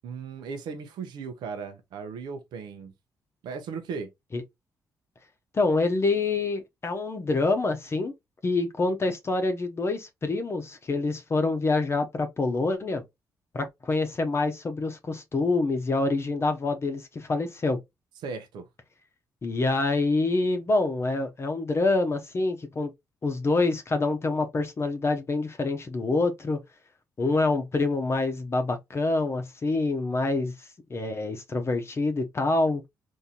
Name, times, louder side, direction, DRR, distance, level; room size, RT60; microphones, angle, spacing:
voice 1, 0.0-2.9 3.4-4.1 18.2-18.6, right 5 dB, 85° right, 0.7 m, -36 dB
voice 2, 5.5-8.1 8.4-13.0 13.5-17.8 19.4-22.9 23.2-26.6 27.2-32.8, left 3 dB, 35° left, 0.7 m, -26 dB
3.7 x 2.6 x 2.7 m
cardioid pair, 85°, 7 cm